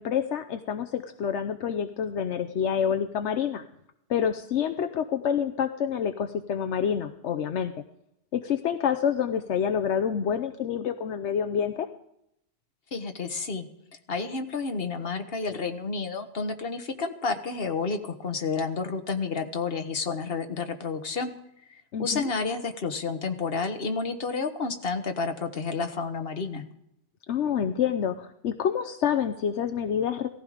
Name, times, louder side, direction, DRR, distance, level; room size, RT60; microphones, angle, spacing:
voice 1, 0.0-3.6 4.1-7.7 8.3-11.9 21.9-22.3 27.3-30.3, left 8 dB, 80° left, 8 dB, 1.1 m, -27 dB
voice 2, 12.9-13.7 14.1-21.3 22.0-26.6, left 4 dB, 55° left, 7 dB, 1.5 m, -30 dB
17.5 x 15.0 x 5.0 m, 0.78 s
omnidirectional pair, 1.2 m